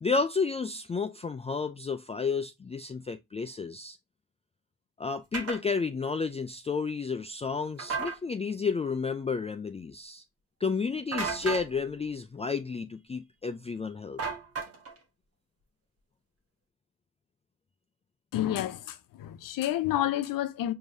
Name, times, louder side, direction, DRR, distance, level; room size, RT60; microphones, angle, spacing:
voice 1, 0.0-4.0 5.0-10.2 10.6-14.2, left 5 dB, 20° left, 0.3 m, -31 dB
sound 1, 5.3-5.6 7.8-8.2 11.1-11.7 14.2-15.0, right 4 dB, 45° right, 1.1 m, -33 dB
voice 2, 18.3-20.7, left 13 dB, 80° left, 0.6 m, -29 dB
4.6 x 2.8 x 2.5 m
cardioid pair, 65°, 33 cm